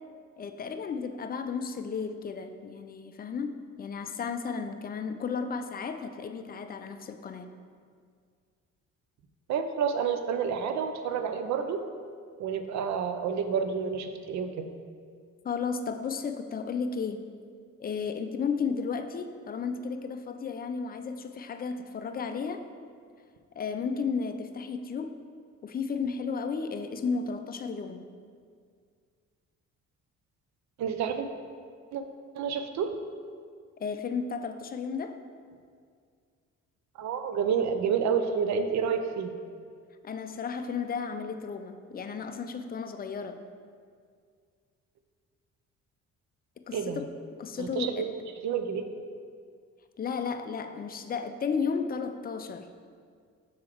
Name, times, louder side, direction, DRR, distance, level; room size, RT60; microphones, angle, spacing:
voice 1, 0.4-7.5 15.4-17.2 17.8-22.6 23.6-25.1 25.6-28.0 33.8-35.2 40.0-43.4 46.6-47.1 47.4-48.1 50.0-52.7, left 5 dB, 30° left, 8 dB, 0.4 m, -33 dB
voice 2, 9.5-11.8 12.4-14.7 30.8-31.3 31.9-32.0 32.3-32.9 37.0-39.3 46.7-47.0 47.6-48.1 48.4-48.9, right 6 dB, 65° right, 8 dB, 0.6 m, -29 dB
6.2 x 3.8 x 4.5 m, 2.1 s
cardioid pair, 90°, 30 cm